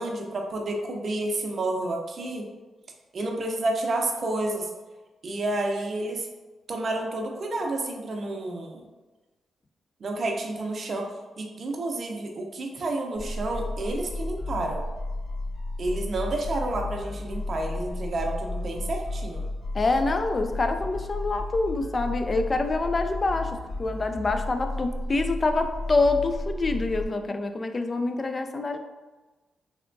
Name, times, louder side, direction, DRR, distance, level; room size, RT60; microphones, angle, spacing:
voice 1, 0.0-2.5 3.1-4.7 5.2-6.3 6.7-8.8 10.0-11.1 11.4-14.8 15.8-19.4, right 2 dB, 55° right, 2 dB, 0.5 m, -30 dB
sound 1, 13.2-27.1, left 2 dB, 55° left, 1.1 m, -33 dB
voice 2, 19.7-28.8, left 3 dB, 35° left, 7 dB, 0.3 m, -26 dB
3.3 x 2.8 x 2.5 m, 1.2 s
cardioid pair, 80°, 0 cm